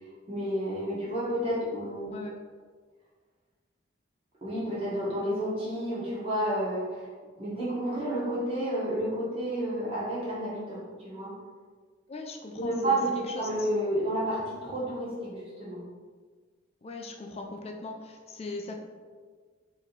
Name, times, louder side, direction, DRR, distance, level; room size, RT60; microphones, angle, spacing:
voice 1, 0.3-2.3 4.4-7.1 7.4-11.3 12.5-13.1 13.4-15.8, right 1 dB, 30° right, -8 dB, 1.4 m, -30 dB
voice 2, 12.1-13.7 16.8-18.8, left 3 dB, 30° left, 3 dB, 0.4 m, -40 dB
4.3 x 3.0 x 4.1 m, 1.5 s
head